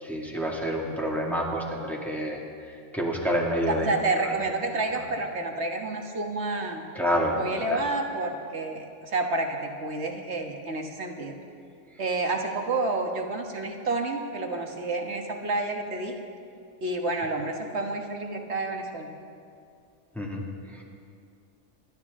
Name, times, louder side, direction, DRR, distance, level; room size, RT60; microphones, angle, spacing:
voice 1, 0.0-2.4 2.9-3.9 7.0-7.4 7.7-7.8 20.2-20.4, equal, ahead, -3 dB, 2.1 m, -28 dB
voice 2, 3.7-6.8 7.3-11.3 12.0-16.1 16.8-19.1, right 2 dB, 60° right, 3 dB, 1.7 m, -29 dB
27.5 x 12.5 x 3.7 m, 2.4 s
omnidirectional pair, 1.3 m